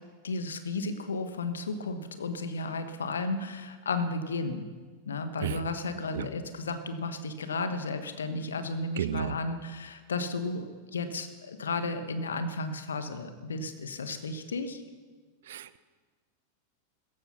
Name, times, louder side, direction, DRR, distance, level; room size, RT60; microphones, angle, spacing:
voice 1, 0.2-4.7 5.1-14.8, left 3 dB, 70° left, 9 dB, 1.3 m, -33 dB
voice 2, 9.0-9.3 15.5-15.8, right 11 dB, 60° right, 16 dB, 0.6 m, -32 dB
16.0 x 14.5 x 5.7 m, 1.5 s
figure-of-eight pair, 90°, 0 cm